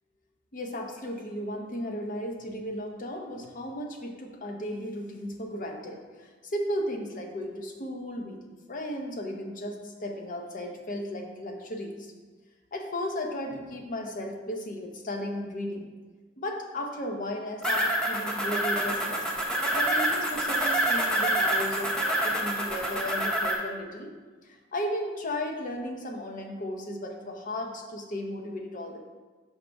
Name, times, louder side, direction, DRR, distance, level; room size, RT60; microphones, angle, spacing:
voice 1, 0.5-12.1 12.7-15.9 16.4-19.3 19.7-21.9 22.2-24.1 24.4-29.0, left 1 dB, 45° left, 2 dB, 0.7 m, -35 dB
sound 1, 17.6-23.5, right 1 dB, 5° left, 0.7 m, -27 dB
5.8 x 3.3 x 5.2 m, 1.4 s
head